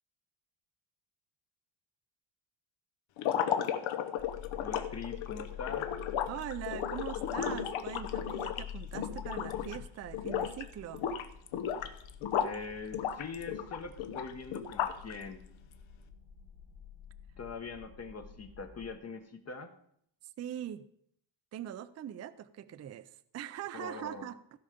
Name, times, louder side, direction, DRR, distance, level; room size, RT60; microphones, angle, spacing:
sound 1, 3.2-9.8 10.1-10.6 10.9-12.6 12.9-15.1, left 9 dB, 80° left, 1.0 m, -34 dB
sound 2, 4.2-18.9, left 9 dB, 60° left, 3.1 m, -48 dB
voice 1, 4.6-5.9 12.4-15.4 17.4-19.7 23.7-24.3, left 4 dB, 35° left, 6 dB, 0.8 m, -42 dB
voice 2, 6.3-11.1 20.4-20.9 21.5-24.4, right 11 dB, 35° right, 13 dB, 0.4 m, -42 dB
16.0 x 5.6 x 5.1 m, 0.69 s
cardioid pair, 140°, 47 cm